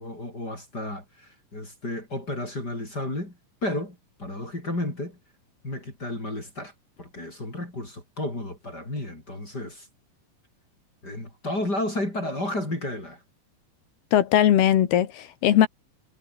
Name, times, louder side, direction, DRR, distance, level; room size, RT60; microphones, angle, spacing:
voice 1, 0.0-5.2 5.6-6.7 7.0-9.9 11.0-13.2, left 1 dB, 25° left, 7.4 m, -32 dB
voice 2, 14.1-15.7, left 11 dB, 85° left, 3.9 m, -19 dB
omnidirectional pair, 4.4 m